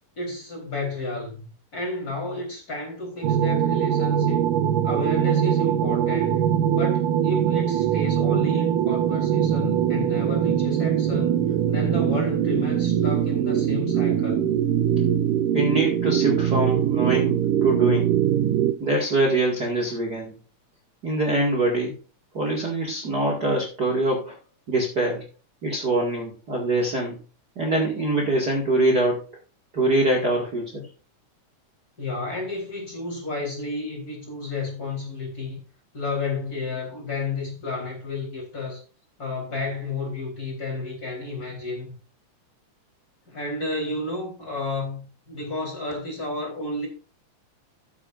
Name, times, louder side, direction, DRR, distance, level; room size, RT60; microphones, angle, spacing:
voice 1, 0.2-4.5 4.8-14.5 32.0-35.6 35.9-38.8 39.2-41.9 43.3-46.9, left 3 dB, 25° left, 4.3 m, -32 dB
sound 1, 3.2-18.7, right 10 dB, 85° right, 2.4 m, -22 dB
voice 2, 15.5-17.4 17.6-18.1 18.8-20.3 21.0-22.0 22.3-24.4 24.7-25.3 25.6-27.2 27.6-29.2 29.7-30.8, right 2 dB, 35° right, 2.4 m, -24 dB
14.5 x 8.9 x 2.6 m
omnidirectional pair, 3.7 m